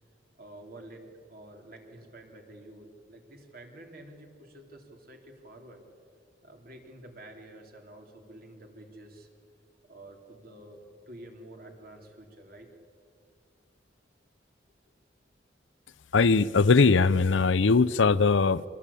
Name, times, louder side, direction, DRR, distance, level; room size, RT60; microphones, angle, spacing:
voice 1, 0.4-5.8 6.4-9.3 9.9-12.7, right 1 dB, 50° right, 3.4 m, -49 dB
voice 2, 16.1-18.6, left 4 dB, 90° left, 0.6 m, -21 dB
25.5 x 21.0 x 8.5 m
head